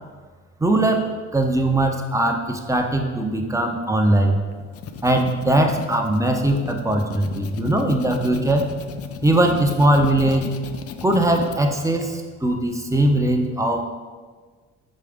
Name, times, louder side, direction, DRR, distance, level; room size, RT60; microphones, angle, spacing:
voice 1, 0.6-4.4 5.0-8.7 9.2-10.5 11.0-13.8, right 1 dB, 10° right, 3 dB, 0.7 m, -20 dB
sound 1, 4.5-11.6, left 7 dB, 50° left, 0.5 m, -35 dB
6.4 x 4.8 x 3.6 m, 1.5 s
cardioid pair, 90°, 30 cm